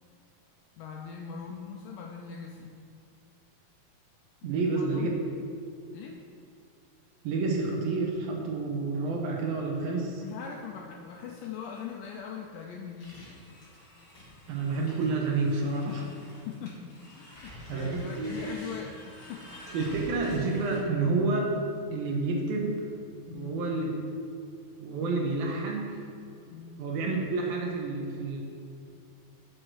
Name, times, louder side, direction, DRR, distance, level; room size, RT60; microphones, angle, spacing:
voice 1, 0.8-2.7 4.4-5.2 5.9-6.2 10.2-13.2 15.9-16.1 16.5-19.5 23.3-23.6 26.5-26.8, left 6 dB, 80° left, 1 dB, 2.0 m, -41 dB
voice 2, 4.4-5.1 7.2-10.2 14.5-16.0 17.7-18.4 19.7-21.5 21.9-22.9 23.3-23.9 24.8-26.0 26.8-28.4, right 3 dB, 75° right, 0 dB, 2.7 m, -29 dB
sound 1, 13.0-20.8, equal, 35° left, 1.9 m, -48 dB
6.5 x 6.3 x 6.2 m, 2.5 s
omnidirectional pair, 4.4 m